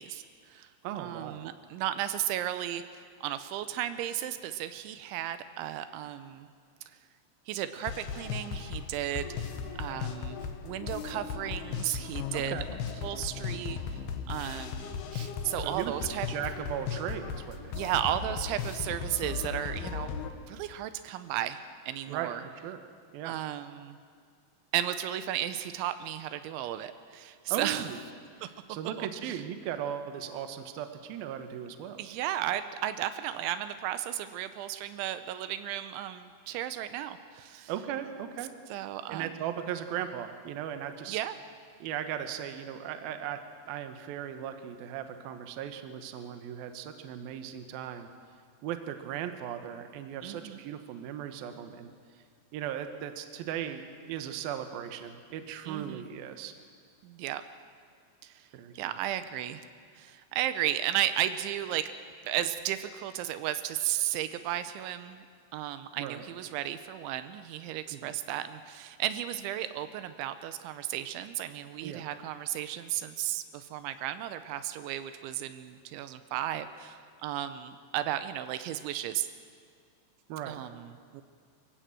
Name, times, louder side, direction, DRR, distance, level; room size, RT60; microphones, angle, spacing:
voice 1, 0.0-0.7 1.0-6.5 7.5-9.3 9.8-12.5 13.0-14.0 14.3-16.3 17.7-22.4 23.2-24.0 24.7-27.9 28.4-28.5 29.0-29.4 32.0-37.7 38.7-39.4 41.1-41.4 50.2-50.6 55.7-56.1 57.0-57.4 58.2-58.5 58.7-59.6 59.9-61.9 62.3-65.3 65.5-79.3 80.5-81.2, right 12 dB, 85° right, 11 dB, 3.1 m, -34 dB
voice 2, 0.8-1.5 12.3-12.7 15.6-15.9 16.3-17.8 22.1-22.3 22.6-22.8 23.1-23.4 27.5-28.0 28.7-32.0 37.7-38.5 39.1-41.2 41.8-43.4 43.7-48.1 48.6-51.9 52.5-56.5 58.5-58.9 66.0-66.2 67.9-68.0 71.8-72.0 80.3-80.6, right 10 dB, 70° right, 8 dB, 2.6 m, -37 dB
sound 1, 7.8-20.3, left 6 dB, 70° left, 2.8 m, -37 dB
24.5 x 16.0 x 7.7 m, 2.1 s
omnidirectional pair, 5.3 m